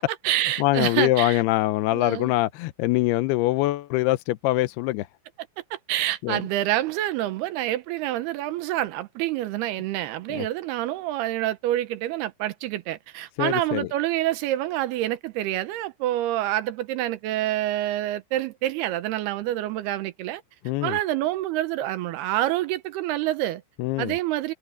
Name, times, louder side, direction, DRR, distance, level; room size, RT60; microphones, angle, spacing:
voice 1, 0.0-1.4 1.9-2.3 5.7-20.4 20.8-23.6 24.0-24.5, right 14 dB, 80° right, 2.9 m, -27 dB
voice 2, 0.6-5.1 6.2-6.4 10.3-10.5 13.4-13.9 20.7-21.0 23.8-24.2, left 18 dB, 90° left, 2.7 m, -23 dB
omnidirectional pair, 4.6 m